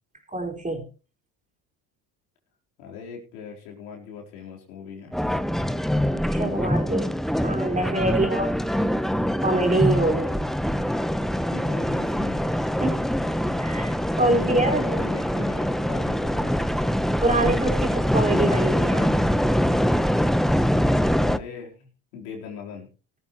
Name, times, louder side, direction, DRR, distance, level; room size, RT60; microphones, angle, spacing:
voice 1, 0.3-0.9 6.1-7.2 7.4-8.5 9.4-10.4 12.8-13.1 13.6-15.0 17.2-19.1, right 2 dB, 15° right, 2 dB, 4.5 m, -25 dB
voice 2, 2.8-5.2 8.1-8.5 11.5-12.5 14.2-17.2 21.2-22.9, left 6 dB, 85° left, -1 dB, 4.2 m, -40 dB
sound 1, 5.1-21.4, equal, ahead, 0.6 m, -24 dB
18.0 x 13.5 x 3.1 m, 0.33 s
supercardioid pair, 80°, 43 cm